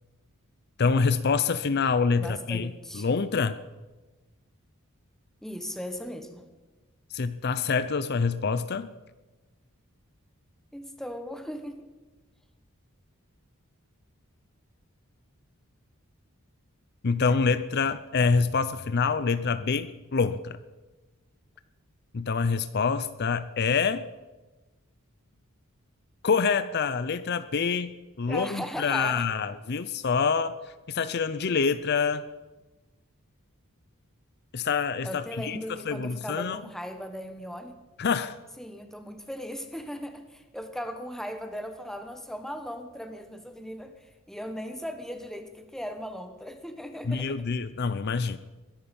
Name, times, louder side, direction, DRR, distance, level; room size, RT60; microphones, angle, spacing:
voice 1, 0.8-3.6 7.1-8.9 17.0-20.6 22.1-24.0 26.2-32.2 34.5-36.6 38.0-38.4 47.0-48.4, left 5 dB, 50° left, 13 dB, 0.5 m, -26 dB
voice 2, 2.2-3.1 5.4-6.4 10.7-11.9 28.3-29.3 35.0-37.7 38.6-43.9 44.3-47.4, equal, ahead, 7 dB, 1.3 m, -38 dB
21.5 x 11.5 x 5.4 m, 1.2 s
head